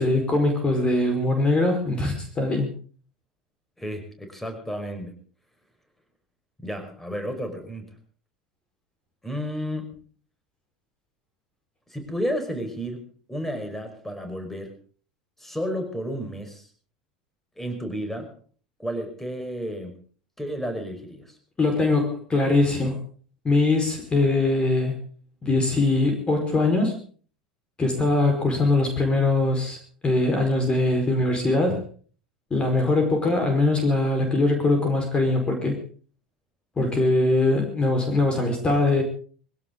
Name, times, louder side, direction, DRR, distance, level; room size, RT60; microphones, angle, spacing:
voice 1, 0.0-2.7 21.6-23.0 23.4-25.0 25.4-27.0 27.8-31.8 32.5-35.7 36.8-39.0, left 2 dB, 20° left, 4 dB, 4.8 m, -22 dB
voice 2, 3.8-5.2 6.6-7.9 9.2-9.9 11.9-14.7 15.4-16.7 17.6-18.3 18.8-20.0 20.4-21.4, equal, 5° left, 6 dB, 5.3 m, -32 dB
22.0 x 16.5 x 3.9 m, 0.43 s
figure-of-eight pair, 80°, 4 cm